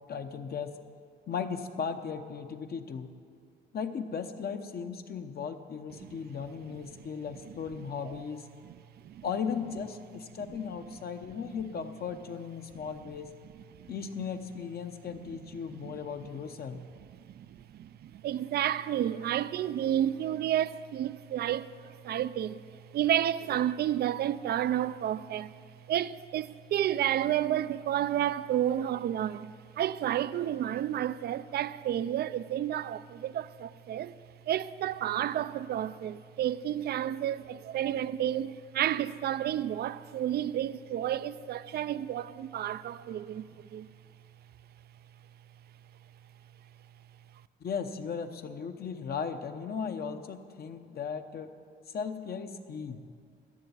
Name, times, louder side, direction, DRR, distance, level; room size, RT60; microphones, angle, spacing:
voice 1, 0.1-0.7 1.3-3.1 3.7-8.4 9.2-13.3 13.9-16.8 47.6-51.5 51.9-53.0, left 6 dB, 50° left, 1.0 m, -36 dB
voice 2, 6.7-7.1 7.8-8.2 8.6-8.7 9.0-9.2 10.4-10.6 13.8-13.9 15.8-16.3 16.7-16.8 17.1-34.1 34.5-43.9, right 11 dB, 55° right, 0.4 m, -31 dB
12.5 x 6.9 x 9.5 m
cardioid pair, 90°, 20 cm